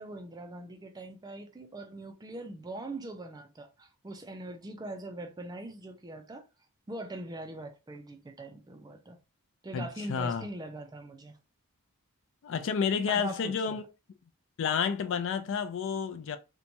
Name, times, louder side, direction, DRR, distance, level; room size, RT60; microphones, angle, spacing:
voice 1, 0.0-6.5 6.9-9.2 9.6-11.4 13.1-13.8, right 1 dB, 15° right, 0.4 m, -42 dB
voice 2, 9.7-10.4 12.4-13.8 14.6-16.4, left 6 dB, 55° left, 0.3 m, -30 dB
2.9 x 2.2 x 2.5 m
head